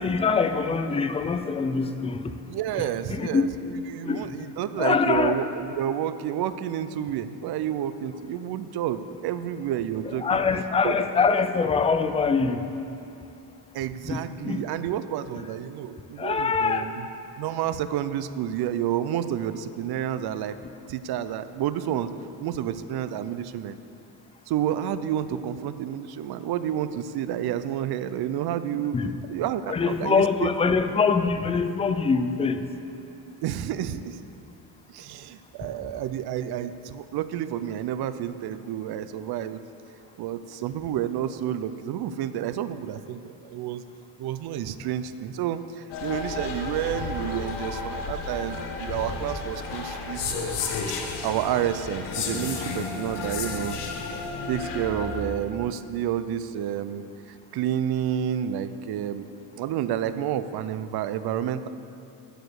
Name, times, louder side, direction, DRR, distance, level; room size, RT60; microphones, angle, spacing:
voice 1, 0.0-2.3 3.1-3.5 4.0-4.4 4.8-5.3 10.2-12.6 14.1-14.6 16.2-16.9 28.9-29.1 29.7-32.6, left 5 dB, 15° left, 9 dB, 0.4 m, -24 dB
voice 2, 2.5-10.4 10.8-11.0 13.7-17.1 17.4-20.6 20.9-22.1 22.4-23.8 24.5-29.0 29.3-30.5 33.4-34.2 34.9-39.6 40.2-43.8 44.2-51.0 51.2-53.8 54.5-59.3 59.6-61.7, right 10 dB, 65° right, 13 dB, 0.6 m, -30 dB
sound 1, 45.9-55.2, left 4 dB, 80° left, 1.3 m, -32 dB
14.5 x 5.0 x 8.0 m, 2.7 s
cardioid pair, 155°, 41 cm